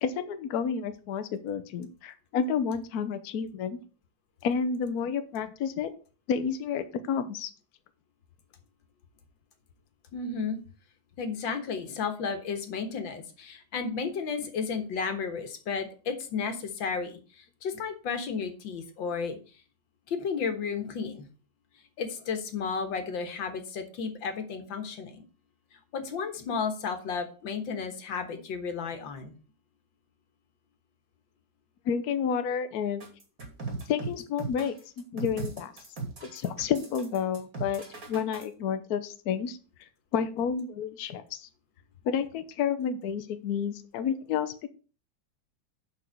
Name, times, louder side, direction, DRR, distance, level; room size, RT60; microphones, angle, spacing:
voice 1, 0.0-3.8 4.4-5.9 6.3-7.5 31.9-33.0 33.9-35.7 36.2-37.8 38.1-39.6 40.1-41.2 42.0-44.7, left 7 dB, 60° left, 10 dB, 1.2 m, -30 dB
voice 2, 10.1-10.6 11.2-19.4 20.1-21.3 22.0-25.2 25.9-29.3, left 5 dB, 90° left, 7 dB, 2.0 m, -33 dB
sound 1, 33.0-38.4, right 4 dB, 45° right, 3.0 m, -38 dB
7.2 x 5.4 x 6.4 m, 0.37 s
omnidirectional pair, 2.0 m